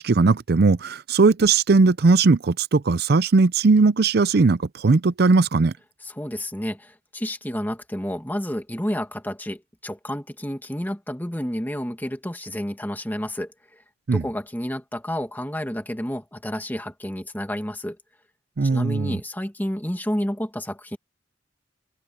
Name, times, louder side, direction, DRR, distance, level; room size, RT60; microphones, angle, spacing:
voice 1, 0.0-5.7 14.1-14.2 18.6-19.2, right 4 dB, 55° right, 0.5 m, -18 dB
voice 2, 6.0-13.8 14.1-18.0 18.6-21.0, equal, 10° left, 1.8 m, -30 dB
head